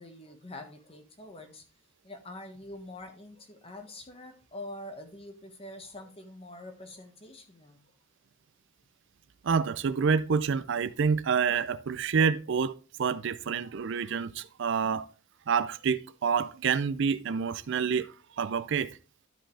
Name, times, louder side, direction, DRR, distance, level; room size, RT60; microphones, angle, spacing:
voice 1, 0.0-1.6 2.0-7.9, left 1 dB, 25° left, 1.3 m, -45 dB
voice 2, 9.4-12.7 13.0-15.1 15.5-18.1 18.4-18.9, right 6 dB, 60° right, 0.4 m, -27 dB
12.0 x 5.1 x 3.4 m
head